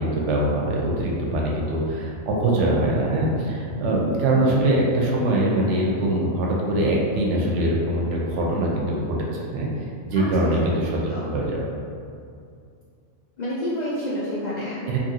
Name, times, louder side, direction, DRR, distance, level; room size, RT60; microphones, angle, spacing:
voice 1, 0.0-9.7 10.1-10.9 11.2-11.6 14.9-15.0, right 1 dB, 70° right, -3 dB, 0.8 m, -23 dB
voice 2, 10.1-10.5 11.0-11.3 13.4-14.8, left 1 dB, 90° left, -9 dB, 0.3 m, -29 dB
2.9 x 2.5 x 2.7 m, 2.3 s
omnidirectional pair, 1.4 m